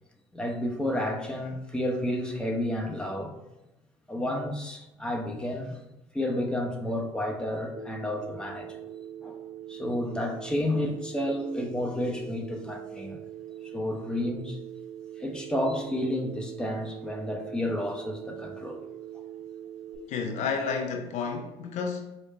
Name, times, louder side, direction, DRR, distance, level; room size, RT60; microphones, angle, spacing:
voice 1, 0.3-3.4 4.1-8.9 9.2-9.4 9.7-13.2 13.6-14.6 15.2-18.8, left 1 dB, 5° left, 0.9 m, -31 dB
Telephone, 7.8-20.0, right 10 dB, 75° right, 0.7 m, -42 dB
voice 2, 20.1-22.2, left 5 dB, 60° left, 0.5 m, -31 dB
4.7 x 2.1 x 4.2 m
hypercardioid pair, 55°, 14 cm